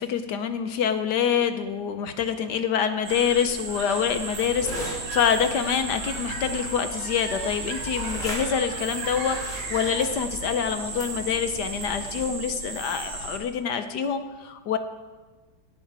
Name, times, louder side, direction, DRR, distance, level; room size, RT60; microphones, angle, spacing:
voice 1, 0.0-14.8, left 7 dB, 65° left, 9 dB, 1.2 m, -26 dB
sound 1, 3.0-13.4, right 3 dB, 75° right, 2.7 m, -35 dB
sound 2, 4.0-12.3, equal, 20° left, 2.8 m, -39 dB
17.5 x 9.3 x 4.7 m, 1.3 s
omnidirectional pair, 2.1 m